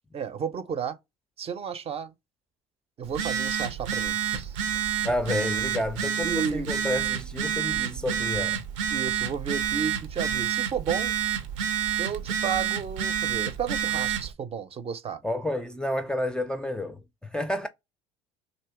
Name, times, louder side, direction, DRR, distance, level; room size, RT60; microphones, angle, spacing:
voice 1, 0.1-1.0 1.4-2.1 3.0-4.7 6.2-6.7 8.9-11.1 12.0-15.2, right 7 dB, 40° right, 0.6 m, -32 dB
Telephone, 3.0-14.3, right 9 dB, 75° right, 0.6 m, -29 dB
voice 2, 5.0-8.6 15.2-17.7, left 1 dB, 5° left, 0.4 m, -30 dB
3.0 x 2.7 x 3.4 m
hypercardioid pair, 70°, 16 cm